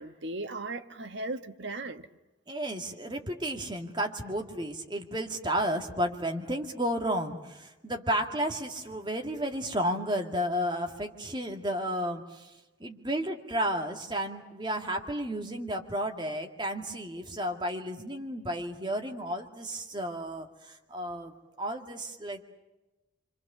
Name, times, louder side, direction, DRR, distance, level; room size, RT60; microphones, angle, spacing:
voice 1, 0.0-2.1, right 2 dB, 70° right, 7 dB, 1.5 m, -37 dB
voice 2, 2.5-12.5 12.8-21.3 21.6-22.4, equal, 25° right, 3 dB, 2.1 m, -32 dB
28.0 x 25.5 x 6.9 m, 1.0 s
head